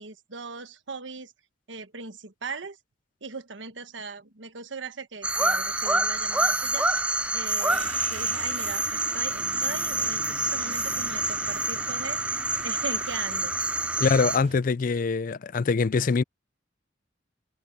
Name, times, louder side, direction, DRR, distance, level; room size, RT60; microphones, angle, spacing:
voice 1, 0.0-1.3 1.7-2.8 3.2-6.9 7.3-12.2 12.6-13.5, right 4 dB, 85° right, 1.4 m, -39 dB
sound 1, 5.2-14.4, right 2 dB, 5° right, 0.7 m, -27 dB
sound 2, 7.7-14.6, right 3 dB, 40° right, 4.4 m, -43 dB
voice 2, 14.0-16.2, left 4 dB, 45° left, 0.4 m, -23 dB
head